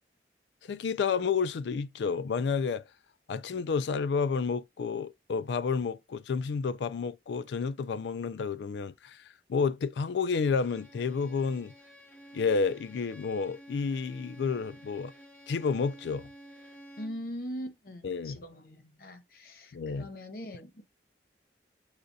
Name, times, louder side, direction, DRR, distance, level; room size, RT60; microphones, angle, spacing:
voice 1, 0.6-2.8 3.3-9.2 9.5-11.7 12.3-15.1 15.5-16.3 18.0-18.4 19.7-20.1, left 5 dB, 75° left, 0.3 m, -30 dB
Bowed string instrument, 10.4-17.3, right 1 dB, 10° left, 0.6 m, -52 dB
voice 2, 17.0-20.8, equal, 55° left, 0.7 m, -41 dB
6.5 x 2.3 x 2.5 m
head